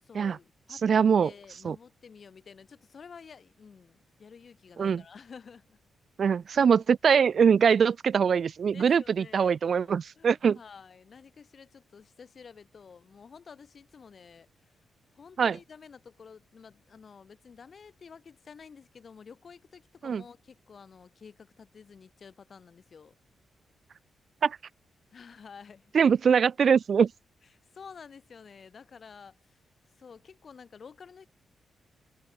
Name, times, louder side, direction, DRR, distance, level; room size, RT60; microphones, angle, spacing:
voice 1, 0.0-5.8 8.7-9.9 10.2-14.7 15.1-23.1 25.1-25.9 27.7-29.6 30.0-31.3, left 6 dB, 50° left, 6.8 m, -50 dB
voice 2, 0.8-1.3 1.6-1.7 4.8-5.0 6.2-10.6 15.4-15.6 20.0-20.2 24.4-24.6 25.9-27.1, right 6 dB, 55° right, 1.0 m, -23 dB
cardioid pair, 100°, 0 cm